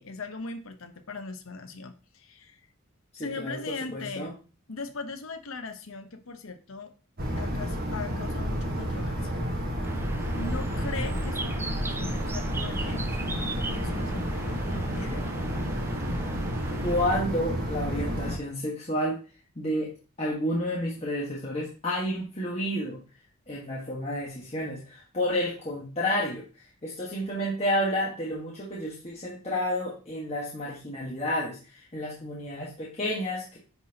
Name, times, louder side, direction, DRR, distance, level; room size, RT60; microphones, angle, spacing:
voice 1, 0.0-2.7 3.2-4.3 4.7-6.9 7.3-9.5 10.3-15.3, left 3 dB, 65° left, 7 dB, 0.9 m, -39 dB
voice 2, 3.1-3.6 3.9-4.3 16.8-19.2 19.5-19.9 20.2-23.0 23.5-26.4 26.8-33.6, left 1 dB, 30° left, -5 dB, 1.4 m, -30 dB
sound 1, 7.2-18.4, equal, 45° right, 1.3 m, -30 dB
Bird, 9.8-17.0, right 3 dB, 10° right, 0.3 m, -39 dB
10.0 x 4.1 x 2.9 m, 0.36 s
head